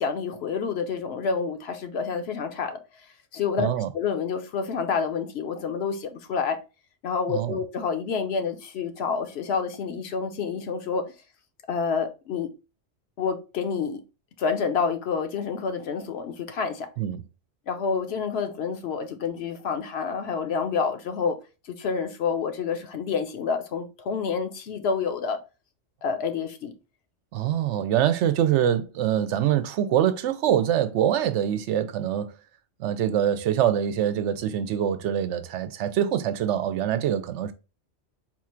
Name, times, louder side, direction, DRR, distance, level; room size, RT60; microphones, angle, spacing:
voice 1, 0.0-2.8 3.3-3.7 3.9-6.6 7.0-11.0 11.7-12.5 13.2-14.0 14.4-16.9 17.7-21.4 21.7-25.4 26.0-26.7, left 5 dB, 70° left, 0.9 m, -28 dB
voice 2, 3.6-3.9 7.3-7.6 17.0-17.2 27.3-32.3 32.8-37.5, right 10 dB, 85° right, 0.9 m, -24 dB
4.4 x 2.5 x 4.3 m
omnidirectional pair, 1.2 m